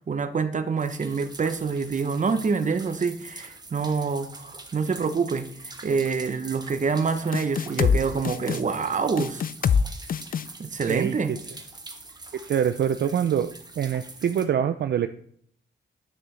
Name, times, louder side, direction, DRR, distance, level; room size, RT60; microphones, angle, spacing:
voice 1, 0.0-5.5 5.8-9.4 10.6-11.3, right 5 dB, 40° right, 10 dB, 0.8 m, -26 dB
sound 1, 0.8-14.5, right 2 dB, 20° right, 1.1 m, -44 dB
sound 2, 7.3-8.0 8.2-8.6 9.2-9.8 10.1-10.5, left 7 dB, 45° left, 0.4 m, -23 dB
voice 2, 12.4-13.5 13.8-15.1, right 9 dB, 60° right, 9 dB, 0.4 m, -24 dB
9.6 x 6.1 x 3.3 m, 0.63 s
cardioid pair, 90°, 20 cm